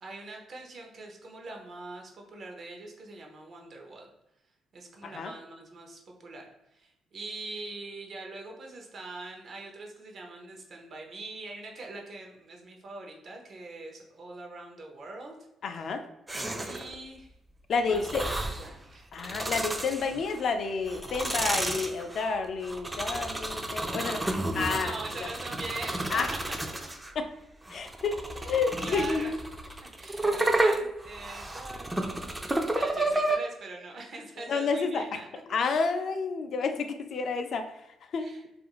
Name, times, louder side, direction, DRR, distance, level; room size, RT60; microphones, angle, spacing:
voice 1, 0.0-4.1 4.7-15.4 15.7-15.9 16.6-17.4 17.8-19.1 23.9-24.3 24.8-26.0 28.3-28.5 28.8-29.4 30.0-35.3 38.2-38.4, right 2 dB, 55° right, 1 dB, 0.6 m, -43 dB
voice 2, 15.6-16.0 17.7-18.2 19.1-24.2 24.6-24.9 26.1-26.3 27.2-27.3 27.7-28.2 28.4-29.4 34.5-35.0 35.5-37.7 38.1-38.3, left 4 dB, 60° left, 7 dB, 0.3 m, -29 dB
sound 1, 16.3-16.9 17.9-18.7 19.1-20.4 20.9-27.1 27.7-33.4, right 1 dB, 15° right, 0.3 m, -31 dB
2.4 x 2.3 x 2.9 m, 0.84 s
cardioid pair, 90°, 0 cm